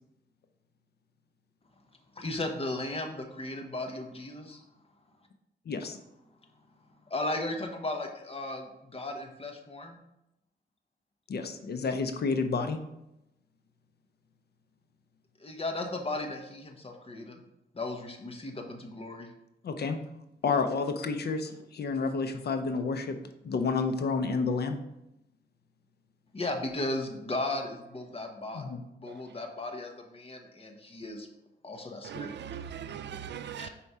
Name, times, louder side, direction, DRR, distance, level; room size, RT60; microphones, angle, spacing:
voice 1, 2.2-4.6 7.1-10.0 15.4-17.4 17.7-19.3 26.3-31.3 31.6-32.3 33.6-33.7, left 2 dB, 30° left, 4 dB, 1.0 m, -36 dB
voice 2, 5.7-6.0 11.3-12.8 19.6-20.0 20.4-23.2 23.4-24.8 28.5-28.8, left 4 dB, 65° left, 8 dB, 0.6 m, -30 dB
voice 3, 32.0-33.7, right 8 dB, 80° right, 12 dB, 0.4 m, -40 dB
4.7 x 4.3 x 5.5 m, 0.88 s
cardioid pair, 95°, 18 cm